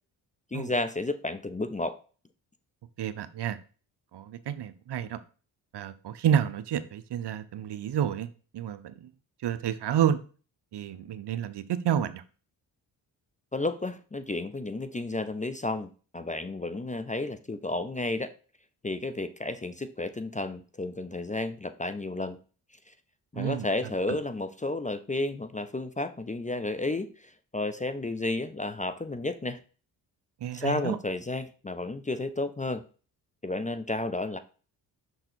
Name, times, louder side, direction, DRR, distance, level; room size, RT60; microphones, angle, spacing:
voice 1, 0.5-2.0 13.5-18.3 18.8-22.4 23.3-29.6 30.5-32.8 33.4-34.4, left 2 dB, 15° left, 11 dB, 0.6 m, -32 dB
voice 2, 3.0-3.6 4.1-5.2 5.7-8.3 8.5-9.1 9.4-10.2 10.7-12.2 23.3-23.7 24.1-24.2 30.4-31.0, right 9 dB, 55° right, 13 dB, 0.8 m, -29 dB
6.3 x 3.9 x 4.4 m, 0.37 s
supercardioid pair, 50°, 49 cm